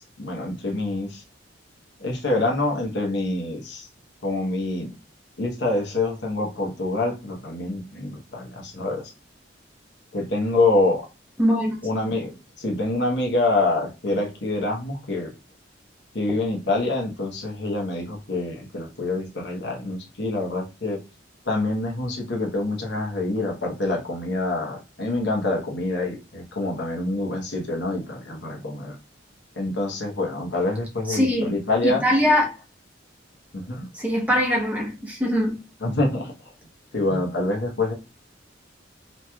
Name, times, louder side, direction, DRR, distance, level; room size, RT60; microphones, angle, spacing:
voice 1, 0.2-1.2 2.0-3.9 4.2-4.9 5.4-9.1 10.1-11.0 11.8-12.3 12.6-15.3 16.1-21.0 21.5-29.0 29.6-32.0 33.5-33.9 35.8-36.3 36.9-37.9, left 2 dB, 65° left, 0.9 m, -26 dB
voice 2, 11.4-11.8 31.1-31.5 31.8-32.6 33.9-35.6 37.1-37.2, equal, 10° right, 0.8 m, -22 dB
3.0 x 3.0 x 2.2 m
head